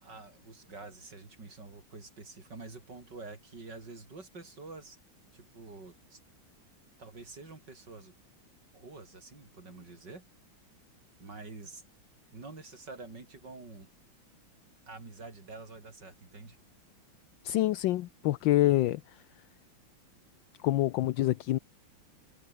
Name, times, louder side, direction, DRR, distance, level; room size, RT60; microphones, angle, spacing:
voice 1, 0.0-5.0 5.3-6.2 7.0-8.2 8.7-10.2 11.2-11.8 12.3-13.9 14.9-16.6, right 3 dB, 55° right, 5.0 m, -47 dB
voice 2, 17.4-19.0 20.6-21.6, left 15 dB, 70° left, 1.3 m, -26 dB
omnidirectional pair, 2.3 m